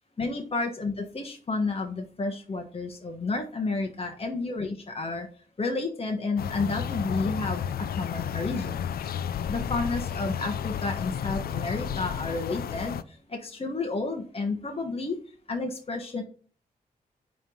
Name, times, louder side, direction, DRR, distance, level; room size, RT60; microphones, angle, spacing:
voice 1, 0.2-4.7 5.0-5.3 5.6-8.9 9.5-15.2 15.5-16.2, left 3 dB, 40° left, 4 dB, 1.1 m, -31 dB
sound 1, 6.4-13.0, left 8 dB, 90° left, 0.4 m, -32 dB
9.4 x 3.2 x 5.3 m, 0.42 s
cardioid pair, 65°, 15 cm